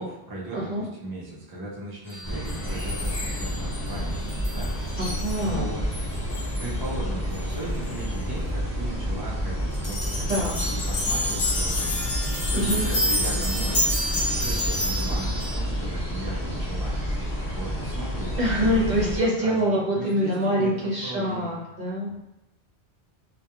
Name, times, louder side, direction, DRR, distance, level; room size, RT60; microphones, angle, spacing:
voice 1, 0.0-4.9 5.4-5.8 6.6-13.8 14.3-17.0 17.5-19.1 19.4-21.6 22.1-22.2, right 1 dB, 30° right, -5 dB, 0.4 m, -37 dB
voice 2, 0.5-0.8 5.0-5.7 10.3-10.5 12.5-12.8 18.4-22.1, equal, 50° right, -5 dB, 0.8 m, -25 dB
sound 1, 2.1-7.0 7.3-7.4 7.9-8.0 9.7-15.6, left 1 dB, 45° left, 0.8 m, -30 dB
sound 2, 2.2-19.2, equal, 15° left, 1.1 m, -29 dB
2.2 x 2.2 x 2.9 m, 0.91 s
omnidirectional pair, 1.1 m